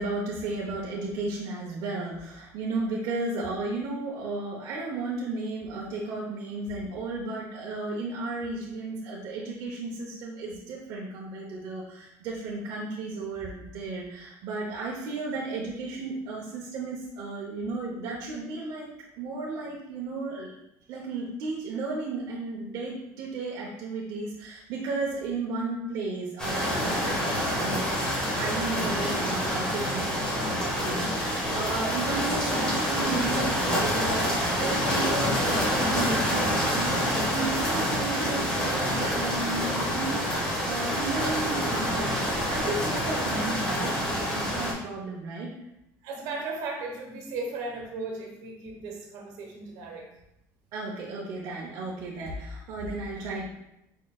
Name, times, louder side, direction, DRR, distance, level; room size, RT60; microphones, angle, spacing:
voice 1, 0.0-18.9 19.2-20.5 20.9-27.9 28.4-42.2 42.5-45.5 50.7-53.5, right 3 dB, 55° right, -4 dB, 0.7 m, -34 dB
sound 1, 26.4-44.7, equal, 10° left, 0.9 m, -27 dB
voice 2, 46.0-50.1, right 3 dB, 75° right, 1 dB, 1.1 m, -36 dB
4.6 x 4.4 x 2.3 m, 0.83 s
cardioid pair, 170°, 7 cm